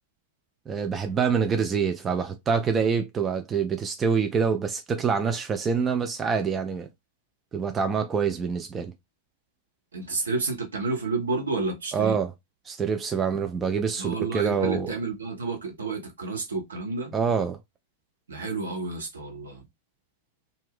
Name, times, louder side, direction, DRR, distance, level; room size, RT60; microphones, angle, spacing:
voice 1, 0.7-6.9 7.5-8.9 11.9-12.3 12.7-14.9 17.1-17.6, right 6 dB, 20° right, 0.4 m, -26 dB
voice 2, 9.9-12.1 14.0-17.1 18.3-19.6, right 3 dB, 70° right, 0.8 m, -30 dB
2.4 x 2.1 x 3.4 m
figure-of-eight pair, 90°, 0 cm